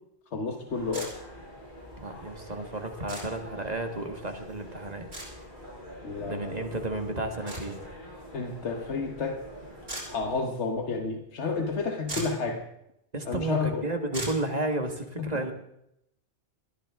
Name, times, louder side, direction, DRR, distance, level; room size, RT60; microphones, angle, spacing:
voice 1, 0.3-1.1 6.0-6.7 8.3-9.4 10.1-12.6 13.2-13.9 15.2-15.3, left 4 dB, 85° left, 4 dB, 1.5 m, -31 dB
sound 1, 0.7-10.4, equal, 45° left, 8.0 m, -46 dB
sound 2, 0.9-1.1 3.1-3.2 5.1-5.3 7.5-7.6 9.9-10.1 11.7-11.8 12.0-12.4 14.1-14.4, right 1 dB, 60° right, 5.4 m, -36 dB
voice 2, 2.0-5.1 6.2-7.9 13.1-15.5, right 2 dB, 40° right, 5 dB, 1.7 m, -32 dB
21.0 x 14.0 x 3.6 m, 0.80 s
omnidirectional pair, 1.1 m